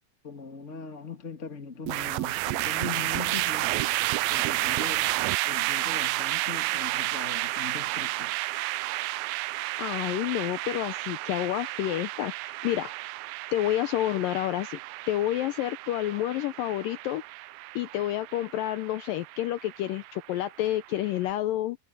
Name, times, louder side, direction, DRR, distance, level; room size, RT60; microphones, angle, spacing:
voice 1, 0.2-3.9 4.3-5.1 5.4-8.3, left 5 dB, 25° left, 1.8 m, -40 dB
sound 1, 1.9-21.1, right 19 dB, 85° right, 2.1 m, -31 dB
voice 2, 9.8-12.9 13.5-14.8 15.1-17.2 17.8-21.8, left 14 dB, 90° left, 2.0 m, -29 dB
omnidirectional pair, 4.8 m